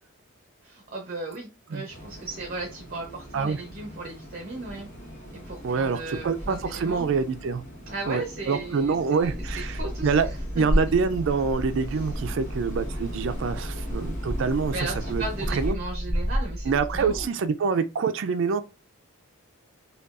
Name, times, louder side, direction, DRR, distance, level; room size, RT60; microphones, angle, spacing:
voice 1, 0.6-4.9 5.5-7.1 7.9-10.4 11.9-12.0 14.7-17.3, right 2 dB, 40° right, 0.7 m, -36 dB
sound 1, 1.9-15.7, equal, 35° left, 1.1 m, -41 dB
voice 2, 5.6-7.6 8.1-10.3 10.5-14.7 15.1-15.2 15.5-15.8 16.7-18.6, right 5 dB, 60° right, 0.3 m, -26 dB
sound 2, 9.2-17.2, equal, 5° right, 0.5 m, -31 dB
5.0 x 2.3 x 2.4 m
head